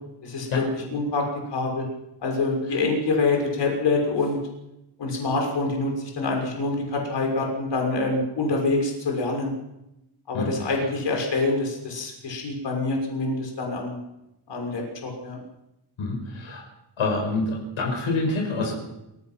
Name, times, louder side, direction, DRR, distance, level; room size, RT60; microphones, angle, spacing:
voice 1, 0.2-1.2 1.5-1.8 2.2-4.4 5.0-9.5 10.3-14.0 14.5-15.4, left 3 dB, 60° left, 1 dB, 6.3 m, -26 dB
voice 2, 10.3-10.7 16.0-16.6 17.0-18.7, left 3 dB, 80° left, 2 dB, 6.0 m, -27 dB
27.5 x 16.0 x 6.0 m, 0.89 s
wide cardioid pair, 180°, 48 cm